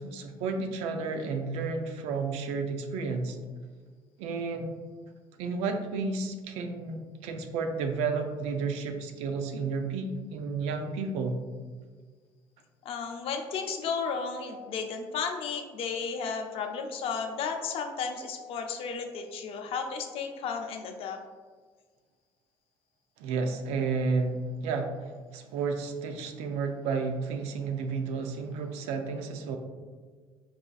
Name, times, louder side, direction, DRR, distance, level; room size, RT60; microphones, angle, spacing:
voice 1, 0.0-3.4 4.2-4.7 5.4-11.4 23.2-29.6, right 4 dB, 80° right, 5 dB, 0.4 m, -32 dB
voice 2, 12.8-21.2, left 5 dB, 60° left, 4 dB, 0.4 m, -33 dB
4.0 x 2.4 x 2.3 m, 1.5 s
supercardioid pair, 85°, 11 cm